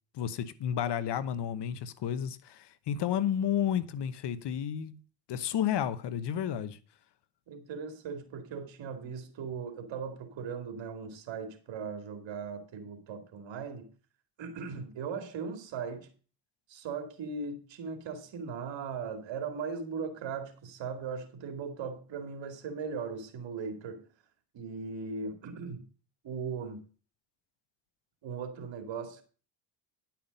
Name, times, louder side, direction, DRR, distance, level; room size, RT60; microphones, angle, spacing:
voice 1, 0.1-5.0 5.3-6.8, left 9 dB, 60° left, 1.0 m, -31 dB
voice 2, 7.5-13.9 14.4-16.1 16.7-24.0 24.5-25.8 26.2-26.8 28.2-29.2, right 5 dB, 70° right, 2.4 m, -38 dB
10.5 x 5.9 x 5.2 m
cardioid pair, 80°, 46 cm